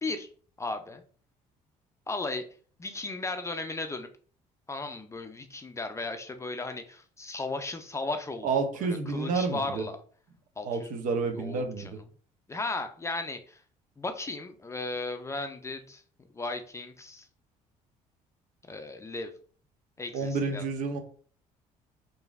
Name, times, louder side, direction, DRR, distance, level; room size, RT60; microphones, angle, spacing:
voice 1, 0.6-1.0 2.1-2.5 2.8-4.1 4.7-10.0 10.6-10.9 11.3-11.9 12.5-13.6 14.0-16.0 16.3-17.3 18.7-19.3 20.0-20.6, left 3 dB, 20° left, 7 dB, 0.4 m, -36 dB
voice 2, 8.4-9.8 10.6-12.0 20.1-21.0, right 4 dB, 65° right, 5 dB, 0.7 m, -30 dB
2.9 x 2.6 x 2.4 m, 0.43 s
supercardioid pair, 80°, 15 cm